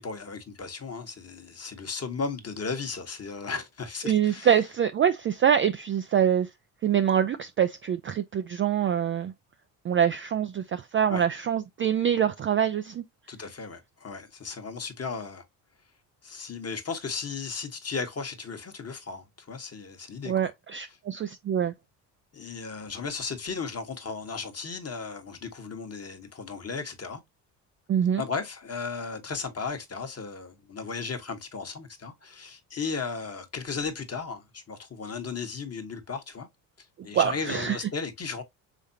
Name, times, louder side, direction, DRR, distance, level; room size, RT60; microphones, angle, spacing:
voice 1, 0.0-4.6 11.1-11.3 13.3-15.4 16.2-20.3 22.3-27.2 28.2-36.5 37.0-38.4, left 5 dB, 30° left, 1.3 m, -35 dB
voice 2, 4.1-6.5 6.8-9.3 9.8-13.0 20.3-21.7 27.9-28.2 37.1-37.8, right 9 dB, 30° right, 0.3 m, -25 dB
5.1 x 3.6 x 2.7 m
hypercardioid pair, 60°, 49 cm